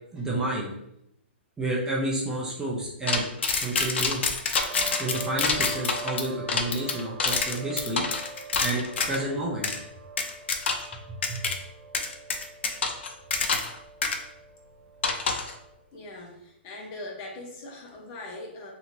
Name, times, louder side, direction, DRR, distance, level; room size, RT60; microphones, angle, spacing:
voice 1, 0.1-0.7 1.6-3.2 3.5-4.2 5.0-8.0 8.6-9.7 11.1-11.5, right 2 dB, 10° right, -4 dB, 0.5 m, -30 dB
sound 1, 3.1-9.2 9.6-9.8 10.2-10.9 11.2-11.5 11.9-13.7 14.0-14.2 15.0-15.5, left 4 dB, 70° left, 0.5 m, -27 dB
sound 2, 4.6-15.9, right 4 dB, 75° right, 0.5 m, -43 dB
voice 2, 15.9-18.7, left 2 dB, 30° left, 0 dB, 0.8 m, -41 dB
2.9 x 2.7 x 2.6 m, 0.78 s
hypercardioid pair, 140°, 6 cm